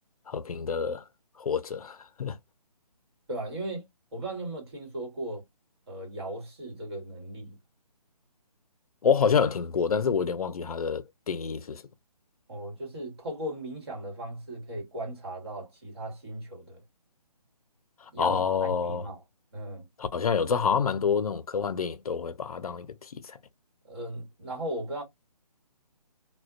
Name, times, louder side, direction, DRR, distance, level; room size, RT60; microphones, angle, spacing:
voice 1, 0.3-1.0 1.4-2.4 9.0-11.8 18.2-19.1 20.0-23.4, left 6 dB, 60° left, 0.4 m, -27 dB
voice 2, 3.3-3.8 4.1-5.4 5.9-7.6 12.5-16.8 18.1-19.2 19.5-19.9 23.8-25.0, right 1 dB, 40° right, 1.4 m, -37 dB
2.4 x 2.1 x 2.4 m
hypercardioid pair, 175°, 21 cm